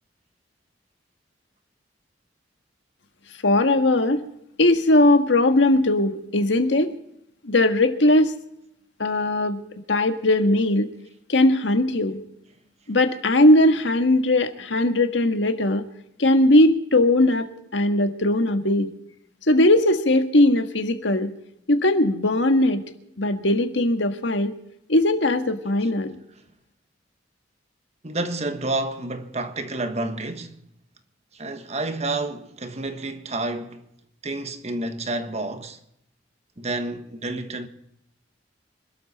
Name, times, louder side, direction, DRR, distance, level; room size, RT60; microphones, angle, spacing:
voice 1, 3.4-4.2 4.6-6.9 7.4-8.3 9.0-9.6 9.9-10.9 11.3-12.2 12.9-15.8 16.2-18.9 19.5-21.3 21.7-22.8 23.2-24.5 24.9-26.1, left 1 dB, 80° left, 1.7 m, -19 dB
voice 2, 28.0-30.6 31.3-33.9 34.2-35.8 36.6-37.7, right 2 dB, 35° right, 1.3 m, -29 dB
26.0 x 12.5 x 4.2 m
head